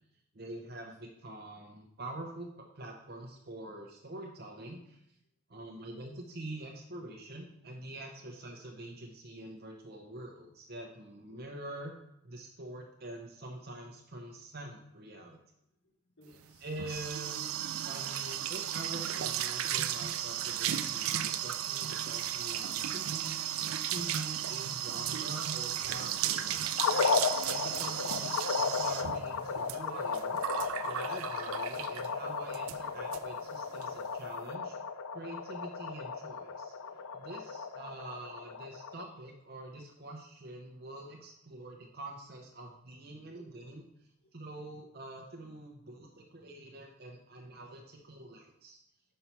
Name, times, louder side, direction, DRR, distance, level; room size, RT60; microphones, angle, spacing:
voice 1, 0.3-5.0 5.5-11.9 12.2-15.4 16.6-17.4 17.8-23.4 23.8-26.9 27.4-30.4 30.8-34.8 35.1-36.7 37.1-43.8 44.3-48.8, right 1 dB, 50° right, 0 dB, 0.8 m, -45 dB
voice 2, 16.2-16.7 22.3-22.6 25.8-25.9 26.3-26.6 27.7-27.9 34.1-34.2 36.4-37.5 43.4-43.5 44.2-44.3, left 1 dB, 55° left, -4 dB, 1.1 m, -61 dB
sound 1, 16.4-32.1 32.5-32.8 33.1-33.2 33.5-33.9, right 11 dB, 85° right, 0.4 m, -35 dB
sound 2, 26.8-39.0, left 5 dB, 90° left, 0.4 m, -35 dB
5.6 x 5.5 x 4.5 m, 0.79 s
head